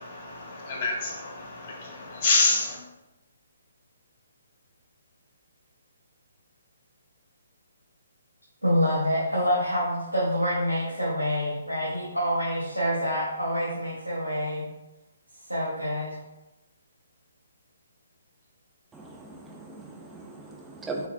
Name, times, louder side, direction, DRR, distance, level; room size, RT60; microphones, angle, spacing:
voice 1, 0.0-2.8, left 3 dB, 35° left, -1 dB, 0.9 m, -27 dB
voice 2, 8.6-14.6 15.5-16.1, equal, 90° right, -9 dB, 1.0 m, -26 dB
voice 3, 18.9-21.1, right 3 dB, 10° right, 0 dB, 0.4 m, -39 dB
3.1 x 3.1 x 2.5 m, 0.95 s
figure-of-eight pair, 135°, 0 cm